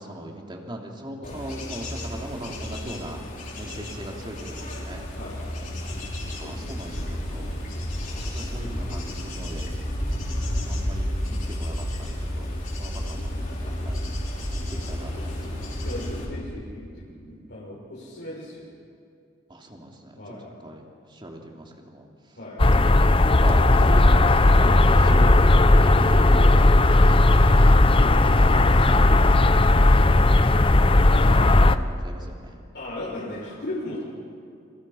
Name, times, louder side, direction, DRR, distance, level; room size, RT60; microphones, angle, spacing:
voice 1, 0.0-3.2 3.6-5.1 6.4-7.6 8.2-9.7 10.6-12.5 12.8-14.0 14.6-15.7 17.0-17.5 19.5-20.2 20.6-22.1 23.4-27.8 28.6-29.5 31.3-32.6, right 1 dB, 25° right, 0 dB, 3.4 m, -39 dB
voice 2, 1.2-1.6 5.1-5.6 6.4-6.7 15.8-18.7 20.2-20.5 22.4-22.6 24.6-24.8 25.1-25.3 28.1-29.6 29.9-30.3 31.1-31.5 32.7-34.0, left 1 dB, 65° left, -6 dB, 6.1 m, -37 dB
Bird / Insect / Wind, 1.2-16.3, left 1 dB, 45° left, 6.1 m, -31 dB
sound 1, 22.6-31.8, left 2 dB, 30° left, 0.7 m, -16 dB
29.0 x 27.0 x 5.9 m, 2.4 s
head